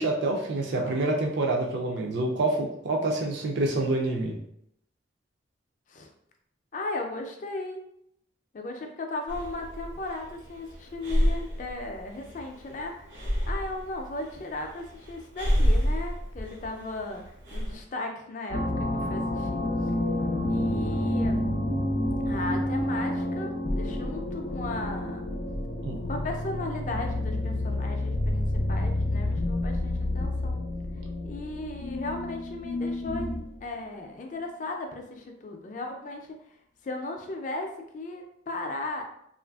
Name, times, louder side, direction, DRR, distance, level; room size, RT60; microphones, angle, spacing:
voice 1, 0.0-4.4 25.8-26.0, right 2 dB, 65° right, 1 dB, 0.4 m, -27 dB
voice 2, 0.6-1.1 5.9-6.1 6.7-7.8 8.5-19.7 20.5-21.4 22.3-25.2 26.1-30.6 31.2-33.3 33.6-36.3 36.8-39.1, left 2 dB, 40° left, 3 dB, 0.4 m, -36 dB
Breathing, 9.3-17.8, equal, 85° right, 1.2 m, -29 dB
sound 1, 18.5-33.6, left 1 dB, 90° left, 0.6 m, -29 dB
3.0 x 2.4 x 2.3 m, 0.73 s
head